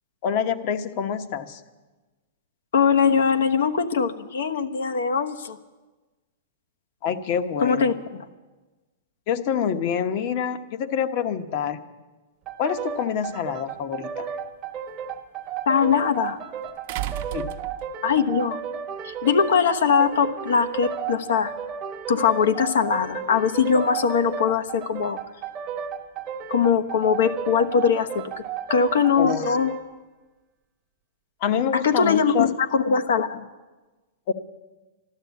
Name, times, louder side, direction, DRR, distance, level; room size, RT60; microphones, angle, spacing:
voice 1, 0.2-1.6 7.0-7.9 9.3-11.8 12.6-14.3 17.3-17.6 29.2-29.6 31.4-32.5 34.3-34.4, left 8 dB, 45° left, 9 dB, 1.0 m, -26 dB
voice 2, 2.7-5.6 7.6-8.3 15.7-16.4 18.0-18.6 19.0-21.5 22.1-25.2 26.5-28.3 28.7-29.7 31.7-33.5, left 6 dB, 80° left, 7 dB, 1.1 m, -21 dB
sound 1, 12.4-29.9, right 7 dB, 30° right, 1.1 m, -33 dB
sound 2, 13.6-13.7 16.9-18.2 19.5-19.6, right 14 dB, 50° right, 0.8 m, -33 dB
12.5 x 12.5 x 8.3 m, 1.2 s
hypercardioid pair, 140°, 0 cm